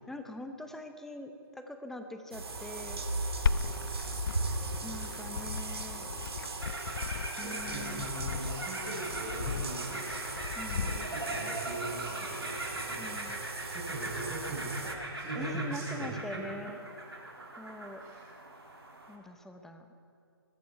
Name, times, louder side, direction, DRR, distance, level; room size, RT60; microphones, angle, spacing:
voice 1, 0.1-3.0 4.8-6.1 7.4-8.1 10.6-10.9 13.0-13.4 15.3-16.8 17.6-18.0 19.1-19.8, left 1 dB, 5° left, 6 dB, 0.9 m, -43 dB
sound 1, 2.3-14.9, right 3 dB, 75° right, 1.8 m, -38 dB
Glass, 3.5-11.4, left 7 dB, 55° left, 0.5 m, -37 dB
sound 2, 6.6-19.1, right 1 dB, 90° right, 3.5 m, -41 dB
voice 2, 7.2-10.1 10.7-16.4 18.0-18.4, right 2 dB, 20° right, -4 dB, 5.0 m, -41 dB
21.0 x 12.5 x 4.6 m, 2.4 s
figure-of-eight pair, 135°, 13 cm